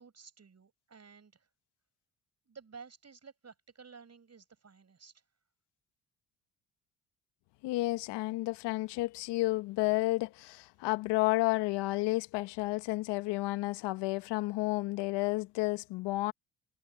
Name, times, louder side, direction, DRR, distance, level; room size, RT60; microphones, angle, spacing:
voice 1, 0.0-1.5 2.4-5.2, right 5 dB, 40° right, 6.6 m, -53 dB
voice 2, 7.6-16.3, left 21 dB, 75° left, 1.4 m, -31 dB
hypercardioid pair, 55°, 42 cm